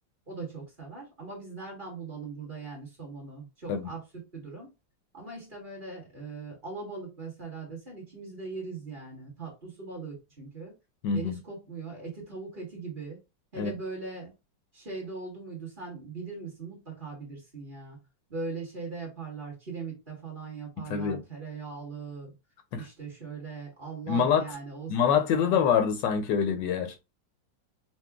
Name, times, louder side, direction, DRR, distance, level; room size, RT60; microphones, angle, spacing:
voice 1, 0.3-4.7 5.1-10.7 11.1-13.2 13.5-14.3 14.7-18.0 18.3-22.3 22.7-24.9 25.4-25.7, right 4 dB, 30° right, 1.4 m, -40 dB
voice 2, 11.0-11.4 13.6-13.7 20.8-21.2 22.7-22.8 24.1-24.4 24.9-27.0, left 7 dB, 75° left, 1.2 m, -25 dB
5.8 x 2.2 x 2.3 m
omnidirectional pair, 2.1 m